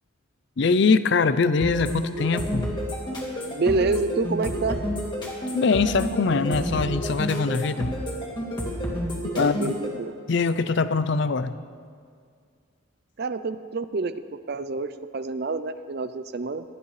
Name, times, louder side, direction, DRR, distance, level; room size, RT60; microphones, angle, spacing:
voice 1, 0.6-2.7 5.5-7.9 9.3-9.7 10.3-11.6, left 4 dB, 55° left, 13 dB, 0.5 m, -22 dB
sound 1, 1.6-9.9, equal, 20° left, 2.1 m, -30 dB
voice 2, 3.5-4.8 9.3-10.1 13.2-14.2 14.5-16.6, right 3 dB, 50° right, 12 dB, 0.5 m, -27 dB
19.5 x 13.5 x 3.3 m, 2.1 s
head